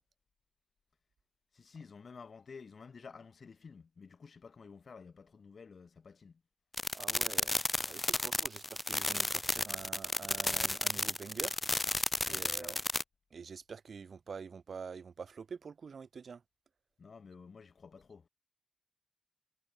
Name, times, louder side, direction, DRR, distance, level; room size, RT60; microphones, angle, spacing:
voice 1, 1.5-6.4 12.3-12.8 17.0-18.3, left 5 dB, 60° left, 6.5 m, -52 dB
sound 1, 6.7-13.0, left 2 dB, 20° left, 1.0 m, -33 dB
voice 2, 6.9-7.6 7.8-11.6 12.3-12.8 13.3-16.4, right 5 dB, 65° right, 1.5 m, -46 dB
wide cardioid pair, 160°, 0 cm